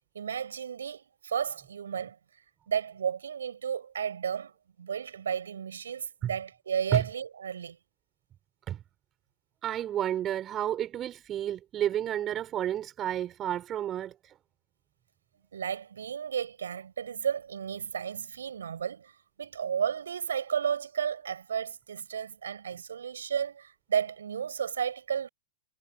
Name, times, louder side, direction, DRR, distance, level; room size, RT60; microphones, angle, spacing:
voice 1, 0.1-2.2 2.7-4.5 4.8-7.8 15.5-19.1 19.4-25.3, right 7 dB, 65° right, 7.7 m, -33 dB
voice 2, 9.6-14.3, right 11 dB, 25° right, 3.8 m, -31 dB
figure-of-eight pair, 95°, 0 cm